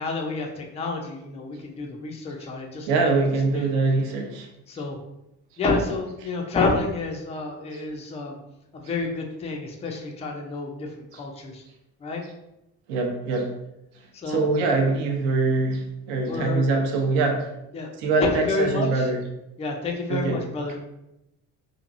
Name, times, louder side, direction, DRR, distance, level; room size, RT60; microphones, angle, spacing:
voice 1, 0.0-3.0 3.5-3.7 4.7-5.0 5.6-8.4 8.7-11.6 12.0-12.2 14.1-14.5 16.3-16.7 17.7-17.9 18.2-19.1 19.6-20.8, left 3 dB, 15° left, 1 dB, 0.3 m, -29 dB
voice 2, 2.9-4.5 11.1-11.2 12.9-13.5 14.3-17.5 18.0-19.2 20.1-20.4, right 3 dB, 60° right, 2 dB, 0.7 m, -23 dB
2.7 x 2.5 x 2.5 m, 0.88 s
figure-of-eight pair, 50°, 50 cm